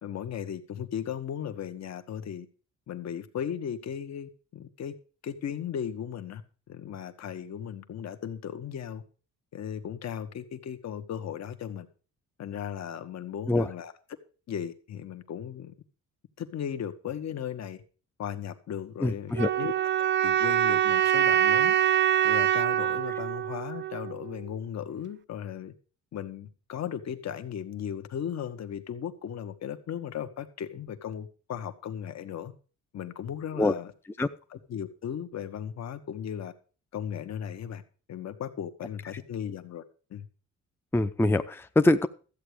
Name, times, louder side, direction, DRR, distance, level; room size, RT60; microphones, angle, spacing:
voice 1, 0.0-2.5 2.9-4.9 5.2-6.4 6.7-9.0 9.5-11.9 12.4-13.9 14.5-15.7 16.4-17.8 18.2-21.7 22.2-25.7 26.1-32.5 32.9-33.9 34.5-36.5 36.9-37.8 38.1-39.8 40.1-40.3, left 9 dB, 60° left, 1.4 m, -36 dB
voice 2, 19.0-19.5 33.6-33.7 34.2-34.3 40.9-42.1, left 2 dB, 5° left, 0.6 m, -24 dB
sound 1, 19.3-24.4, right 11 dB, 40° right, 0.5 m, -25 dB
13.5 x 8.2 x 5.0 m
cardioid pair, 90°, 30 cm